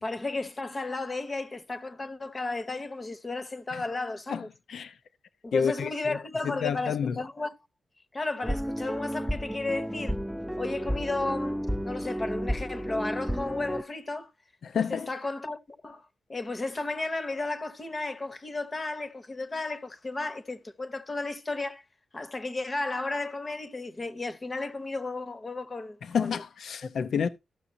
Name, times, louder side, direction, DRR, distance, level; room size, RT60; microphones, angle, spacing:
voice 1, 0.0-4.5 5.4-7.5 8.1-10.1 10.6-14.3 14.7-21.8 22.1-26.3 26.8-26.9, left 2 dB, 30° left, 0.8 m, -34 dB
voice 2, 5.5-6.2 6.4-7.2 14.6-15.1 26.0-27.3, left 7 dB, 75° left, 0.6 m, -29 dB
sound 1, 8.4-13.8, equal, ahead, 0.4 m, -32 dB
14.5 x 6.0 x 2.7 m
wide cardioid pair, 110°, 0 cm